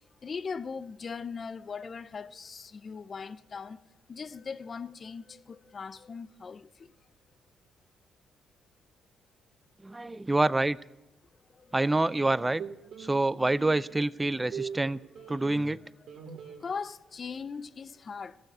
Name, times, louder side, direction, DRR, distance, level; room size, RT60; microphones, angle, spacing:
voice 1, 0.2-3.8 4.1-6.9 11.5-11.8 16.6-18.4, left 5 dB, 45° left, 0.5 m, -39 dB
voice 2, 9.8-10.8 11.7-12.6 13.0-15.0 15.3-15.8, right 2 dB, 15° right, 0.4 m, -27 dB
sound 1, 12.6-13.1 13.6-15.8 16.1-16.6, right 7 dB, 65° right, 1.3 m, -42 dB
15.5 x 6.5 x 8.0 m
supercardioid pair, 60°, 0 cm